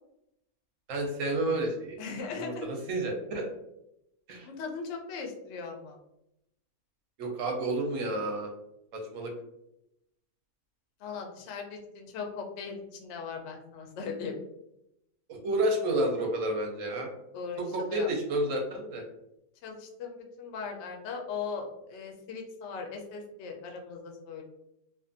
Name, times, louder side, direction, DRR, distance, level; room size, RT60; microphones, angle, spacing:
voice 1, 0.9-2.0 2.3-3.5 4.3-4.5 7.2-8.5 8.9-9.3 15.3-17.1 17.7-19.0, right 1 dB, 70° right, 1 dB, 0.9 m, -30 dB
voice 2, 2.0-2.7 4.4-6.0 11.0-14.3 17.3-18.1 19.6-24.5, left 5 dB, 65° left, 1 dB, 0.7 m, -39 dB
2.5 x 2.3 x 2.5 m, 0.83 s
omnidirectional pair, 1.5 m